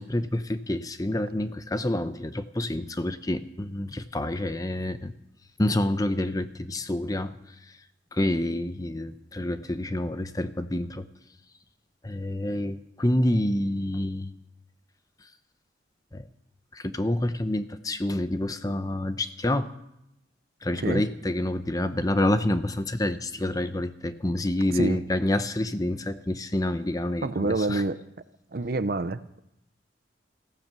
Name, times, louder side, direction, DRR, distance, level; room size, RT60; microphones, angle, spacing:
voice 1, 0.0-5.1 5.6-7.8 8.1-11.1 12.0-14.3 16.1-16.3 16.7-19.7 20.6-27.8, left 1 dB, 20° left, 11 dB, 0.7 m, -28 dB
voice 2, 27.2-28.0 28.5-29.4, right 3 dB, 55° right, 14 dB, 0.6 m, -27 dB
15.0 x 12.0 x 7.5 m, 0.81 s
head